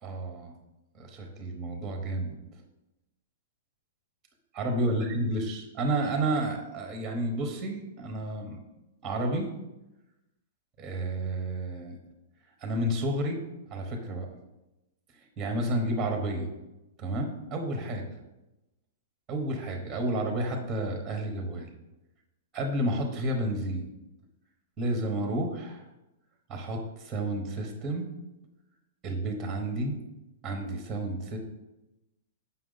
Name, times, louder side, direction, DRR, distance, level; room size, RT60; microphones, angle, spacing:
voice 1, 0.0-0.5 0.9-2.4 4.5-8.6 9.0-9.5 10.8-11.9 12.6-13.4 13.7-14.3 15.4-16.5 17.0-18.2 19.3-21.7 22.5-23.9 24.8-25.8 26.5-28.1 29.0-30.0 30.4-31.4, right 1 dB, 10° right, 4 dB, 0.9 m, -31 dB
7.6 x 5.6 x 3.9 m, 0.98 s
hypercardioid pair, 170°, 0 cm